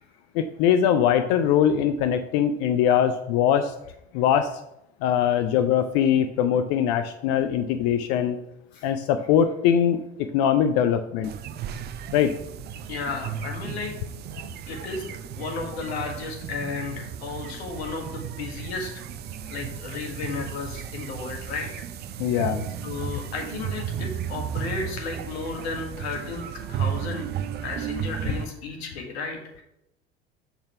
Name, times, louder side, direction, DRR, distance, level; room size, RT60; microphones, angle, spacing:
voice 1, 0.3-3.7 4.1-4.5 5.0-8.4 8.8-10.0 10.3-11.3 12.1-12.3 22.2-22.6, left 9 dB, 50° left, 9 dB, 0.5 m, -22 dB
sound 1, 11.2-28.4, right 9 dB, 30° right, 0.5 m, -34 dB
voice 2, 12.9-13.9 14.7-18.9 19.5-21.9 22.8-27.3 27.6-29.6, left 4 dB, 70° left, 2 dB, 1.5 m, -34 dB
6.2 x 4.0 x 5.7 m, 0.84 s
figure-of-eight pair, 65°, 33 cm